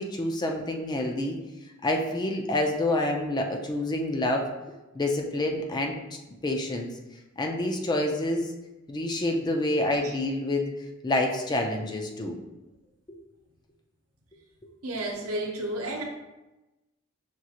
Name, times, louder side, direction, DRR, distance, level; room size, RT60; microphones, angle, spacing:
voice 1, 0.0-1.4 1.8-4.5 4.9-6.0 6.4-6.9 7.4-8.5 8.9-10.7 11.0-12.4 13.1-13.2, left 1 dB, 20° left, 2 dB, 0.4 m, -27 dB
voice 2, 14.8-16.0, right 1 dB, 75° right, 0 dB, 0.8 m, -32 dB
6.0 x 2.4 x 2.8 m, 1.0 s
head